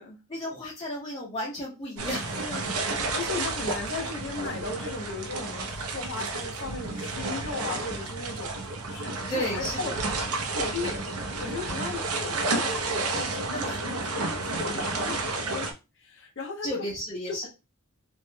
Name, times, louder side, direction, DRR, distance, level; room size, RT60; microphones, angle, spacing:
voice 1, 0.3-2.4 9.3-9.9 13.5-13.8 14.6-14.8 16.6-17.5, left 1 dB, 20° left, -8 dB, 0.8 m, -33 dB
sound 1, 2.0-15.7, right 3 dB, 80° right, 0.7 m, -31 dB
voice 2, 2.3-16.8 17.3-17.5, left 3 dB, 55° left, 2 dB, 0.7 m, -37 dB
3.2 x 3.1 x 2.2 m, 0.27 s
head